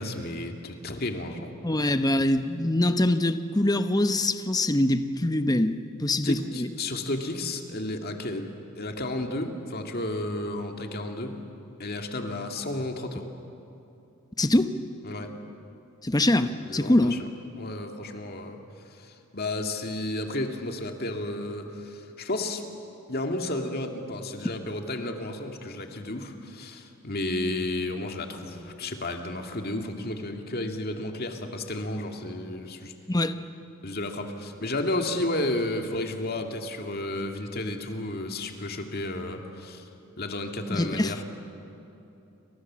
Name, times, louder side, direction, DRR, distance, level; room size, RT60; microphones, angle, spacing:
voice 1, 0.0-1.5 6.2-8.5 8.8-11.4 11.8-13.3 15.0-15.3 16.7-17.3 17.6-18.6 18.9-22.6 23.1-32.9 33.8-39.9 40.2-41.2, left 1 dB, 45° left, 4 dB, 2.2 m, -32 dB
voice 2, 1.6-6.7 14.4-14.8 16.0-17.2 33.1-33.3 40.7-41.1, left 1 dB, 15° left, 9 dB, 0.9 m, -24 dB
30.0 x 25.5 x 7.5 m, 2.8 s
head